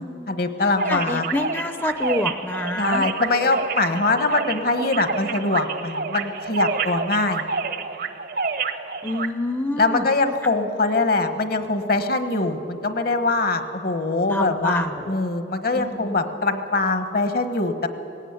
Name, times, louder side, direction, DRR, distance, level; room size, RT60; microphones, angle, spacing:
voice 1, 0.0-1.3 2.8-7.5 9.8-17.9, left 3 dB, 55° left, 9 dB, 1.2 m, -23 dB
sound 1, 0.8-9.3, right 4 dB, 55° right, 0.8 m, -28 dB
voice 2, 0.9-3.0 9.0-10.1 14.3-15.2 15.7-16.3, left 1 dB, 10° left, 8 dB, 0.6 m, -27 dB
18.5 x 16.5 x 9.5 m, 2.9 s
head